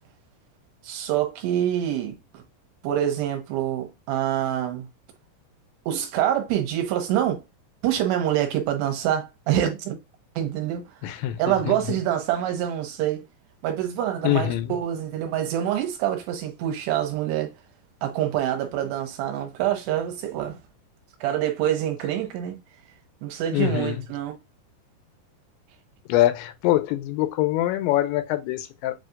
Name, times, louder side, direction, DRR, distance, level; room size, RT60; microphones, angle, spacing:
voice 1, 0.8-2.4 2.8-4.9 5.9-7.4 7.8-10.0 10.4-10.8 11.4-13.2 13.6-17.5 18.0-20.6 21.2-22.6 23.2-24.4, right 11 dB, 80° right, 2.7 m, -26 dB
voice 2, 11.0-11.8 14.2-14.7 23.5-24.0 26.1-28.9, left 14 dB, 85° left, 2.8 m, -24 dB
7.4 x 2.7 x 2.5 m
omnidirectional pair, 5.2 m